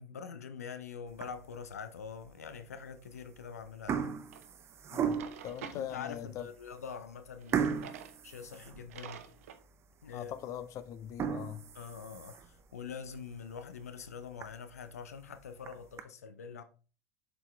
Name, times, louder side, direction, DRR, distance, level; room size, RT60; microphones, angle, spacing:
voice 1, 0.0-4.1 5.7-7.7 8.2-9.2 10.0-10.3 11.7-16.6, left 6 dB, 80° left, 0.6 m, -44 dB
sound 1, 1.1-1.6 2.2-2.3 3.1-3.4 3.7-5.5 6.1-6.2 6.6-6.7 7.5-9.3 9.7-9.8 10.3-10.4 11.0-12.6 13.1-13.2 13.6-13.7 14.0-14.1 14.4-14.5 15.4-16.0, right 7 dB, 30° right, 0.7 m, -36 dB
Drawer open or close, 4.3-4.4 4.9-5.8 7.4-8.2 8.5-8.6 8.9-9.6, right 9 dB, 65° right, 0.7 m, -48 dB
voice 2, 5.4-6.5 10.1-11.6, left 10 dB, 40° left, 0.6 m, -41 dB
7.0 x 4.3 x 3.3 m
figure-of-eight pair, 80°, 8 cm